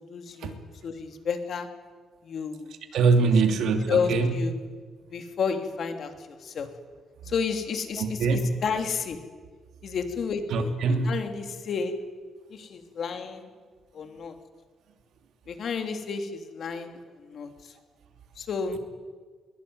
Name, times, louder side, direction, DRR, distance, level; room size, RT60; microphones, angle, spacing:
voice 1, 0.1-1.7 2.2-2.7 3.2-3.3 3.9-4.5 5.1-6.7 7.2-9.2 9.8-12.0 12.5-13.5 13.9-14.3 15.5-17.7 18.4-18.8, left 5 dB, 50° left, 6 dB, 3.0 m, -31 dB
voice 2, 2.9-4.3 8.0-8.4 10.5-11.1, right 4 dB, 70° right, 6 dB, 2.8 m, -23 dB
22.5 x 22.0 x 9.6 m, 1.5 s
cardioid pair, 155°, 0 cm